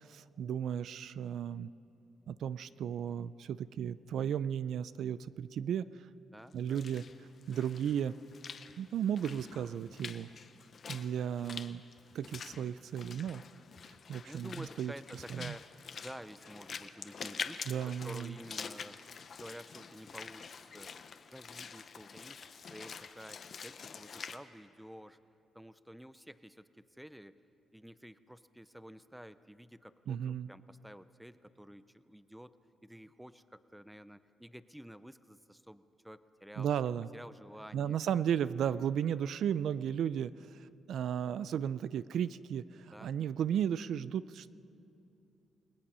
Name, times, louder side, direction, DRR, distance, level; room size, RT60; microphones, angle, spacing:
voice 1, 0.1-1.7 2.3-5.9 6.5-7.0 7.5-8.1 8.8-10.3 10.9-11.8 12.1-13.4 14.1-14.9 15.4-15.5 17.7-18.3 30.1-30.5 36.6-37.1 37.7-44.5, right 9 dB, 65° right, 16 dB, 0.4 m, -34 dB
voice 2, 6.3-6.9 14.2-20.9 21.3-25.2 25.5-27.4 27.7-32.5 32.8-36.7 37.1-38.0 42.9-43.1, equal, 5° right, 13 dB, 0.5 m, -51 dB
Walk footsteps / Splash splatter, 6.5-24.4, left 6 dB, 40° left, 0.8 m, -47 dB
29.0 x 19.5 x 5.5 m, 2.8 s
cardioid pair, 165°, 0 cm